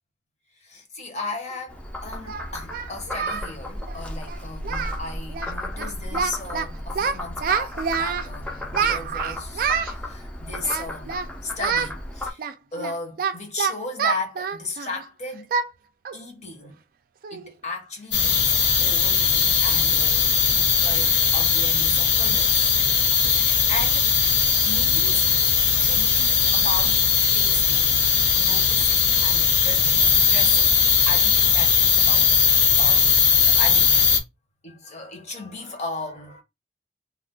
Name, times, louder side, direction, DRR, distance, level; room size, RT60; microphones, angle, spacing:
voice 1, 0.6-11.2 11.4-12.4 12.7-15.5 16.1-16.8 17.3-22.6 23.2-24.1 24.6-25.3 25.7-27.1 27.3-27.9 28.3-30.7 31.0-33.9 34.6-36.4, left 3 dB, 40° left, 0.9 m, -35 dB
Singing, 1.5-1.6 2.3-3.5 3.8-4.0 4.3-4.4 4.6-5.0 5.3-5.5 5.8-6.7 7.0-8.3 8.7-9.9 10.6-11.3 11.6-11.9 12.4-15.0 15.5-15.7 16.1-16.2 16.7-16.8 17.2-17.5, right 6 dB, 55° right, 0.4 m, -27 dB
Frog, 1.7-12.3, left 1 dB, 5° left, 0.5 m, -34 dB
sound 1, 18.1-34.2, left 6 dB, 85° left, 0.7 m, -19 dB
2.5 x 2.3 x 3.6 m
head